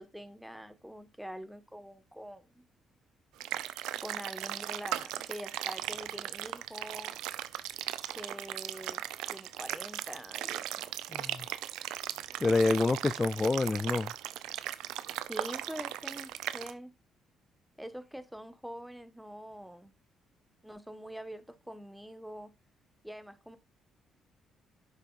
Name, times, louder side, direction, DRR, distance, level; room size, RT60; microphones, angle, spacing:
voice 1, 0.0-2.6 3.9-7.2 8.1-9.0 9.3-10.9 15.3-16.9 17.8-19.9 20.6-22.5 23.0-23.6, equal, 5° right, 1.5 m, -45 dB
sound 1, 3.4-16.7, right 13 dB, 75° right, 0.6 m, -38 dB
voice 2, 11.1-11.5 12.4-14.1, left 3 dB, 30° left, 0.4 m, -27 dB
10.5 x 6.7 x 2.6 m
hypercardioid pair, 50°, 0 cm